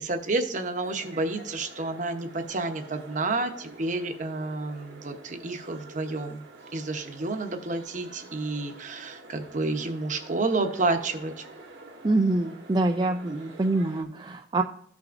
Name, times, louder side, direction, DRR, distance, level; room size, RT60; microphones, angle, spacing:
voice 1, 0.0-6.4 6.7-11.4, right 2 dB, 45° right, 6 dB, 0.9 m, -30 dB
sound 1, 0.8-14.0, right 2 dB, 75° right, 1.3 m, -48 dB
voice 2, 12.0-14.6, right 2 dB, 25° right, 4 dB, 0.4 m, -25 dB
14.5 x 5.9 x 2.5 m, 0.63 s
head